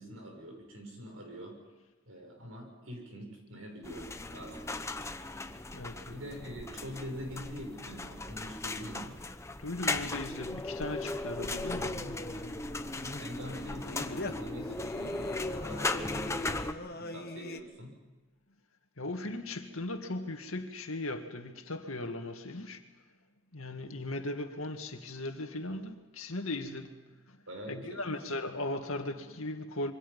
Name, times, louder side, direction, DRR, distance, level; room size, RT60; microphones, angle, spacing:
voice 1, 0.0-1.6 2.1-4.9 6.1-9.2 13.2-18.0 27.5-28.2, equal, 80° right, 7.2 m, -44 dB
sound 1, 3.8-16.7, left 2 dB, 15° left, 0.9 m, -37 dB
voice 2, 5.7-6.2 9.6-12.1 19.0-22.8 23.5-27.0 27.3-27.4 27.7-29.9, left 2 dB, 85° left, 2.2 m, -38 dB
Singing, 11.4-17.6, left 2 dB, 50° left, 1.2 m, -44 dB
26.5 x 24.5 x 5.6 m
head